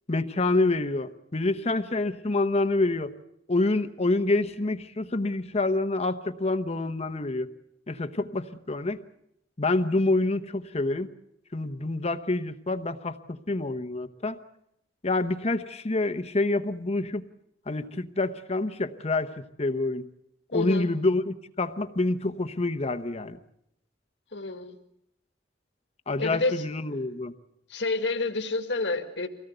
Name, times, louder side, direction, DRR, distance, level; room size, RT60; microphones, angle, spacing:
voice 1, 0.1-3.1 3.5-7.5 7.9-9.0 9.6-11.1 11.5-14.4 15.0-17.2 17.7-20.1 20.5-23.4 26.1-27.3, left 2 dB, 35° left, 9 dB, 0.9 m, -27 dB
voice 2, 20.5-20.9 24.3-24.8 26.2-26.6 27.7-29.3, left 3 dB, 70° left, 5 dB, 2.0 m, -28 dB
24.5 x 18.0 x 7.9 m, 0.78 s
head